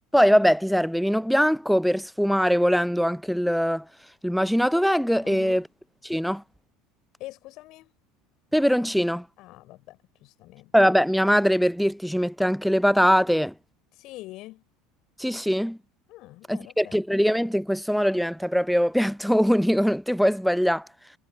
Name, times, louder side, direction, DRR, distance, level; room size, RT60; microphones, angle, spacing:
voice 1, 0.1-3.8 4.2-5.6 6.0-6.4 8.5-9.2 10.7-13.5 15.2-15.8 16.5-20.9, equal, ahead, 0.8 m, -22 dB
voice 2, 5.2-5.6 7.2-7.9 9.4-10.7 13.9-14.6 16.1-17.0, left 18 dB, 50° left, 4.2 m, -44 dB
figure-of-eight pair, 70°, 0 cm